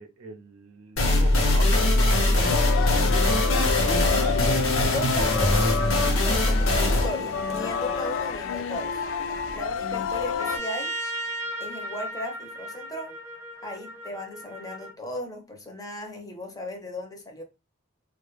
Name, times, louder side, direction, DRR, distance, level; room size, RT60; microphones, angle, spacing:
voice 1, 0.0-5.2 5.5-5.9, right 3 dB, 70° right, 0.6 m, -40 dB
sound 1, 1.0-8.4, left 1 dB, 85° left, 0.8 m, -22 dB
sound 2, 2.4-10.6, left 6 dB, 65° left, 0.3 m, -29 dB
voice 2, 4.8-5.7 6.2-9.0 9.5-10.9 11.6-13.1 13.6-17.4, left 1 dB, 20° left, 0.6 m, -36 dB
Trumpet, 10.4-14.9, right 1 dB, 15° right, 0.9 m, -35 dB
2.1 x 2.1 x 3.0 m
head